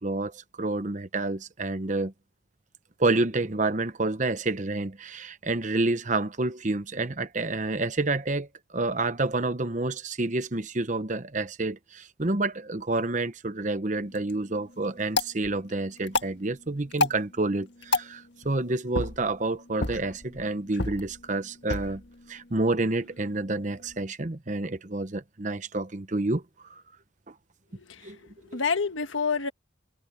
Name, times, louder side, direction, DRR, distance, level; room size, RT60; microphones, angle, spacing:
voice 1, 0.0-2.1 3.0-22.0 22.3-26.4 26.7-26.8 28.0-28.2 28.5-28.6, right 2 dB, 40° right, 0.9 m, -29 dB
sound 1, 14.0-24.0, left 2 dB, 60° left, 1.8 m, -34 dB
voice 2, 27.8-29.5, left 5 dB, 80° left, 1.5 m, -29 dB
head